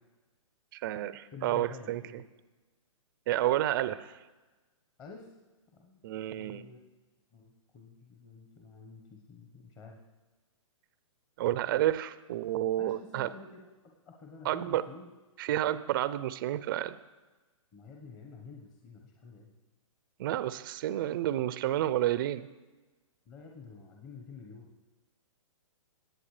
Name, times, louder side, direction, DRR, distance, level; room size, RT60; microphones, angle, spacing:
voice 1, 0.7-2.2 3.3-4.2 6.0-6.6 11.4-13.3 14.4-14.8 15.4-17.0 20.2-22.5, right 13 dB, 40° right, 15 dB, 0.5 m, -30 dB
voice 2, 1.3-2.2 5.0-5.3 5.7-6.0 6.3-6.8 7.3-10.0 12.8-15.1 17.7-19.5 23.3-24.7, left 4 dB, 25° left, 0 dB, 1.1 m, -50 dB
19.5 x 8.2 x 3.3 m, 1.2 s
hypercardioid pair, 145°, 17 cm